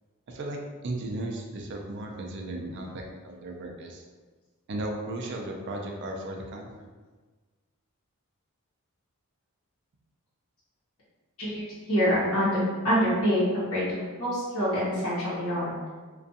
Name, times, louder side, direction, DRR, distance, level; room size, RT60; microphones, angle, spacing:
voice 1, 0.3-0.6 0.8-4.0 4.7-6.9, right 1 dB, 50° right, 1 dB, 0.4 m, -35 dB
voice 2, 11.4-15.9, equal, 65° left, -11 dB, 0.9 m, -26 dB
2.4 x 2.3 x 2.6 m, 1.4 s
head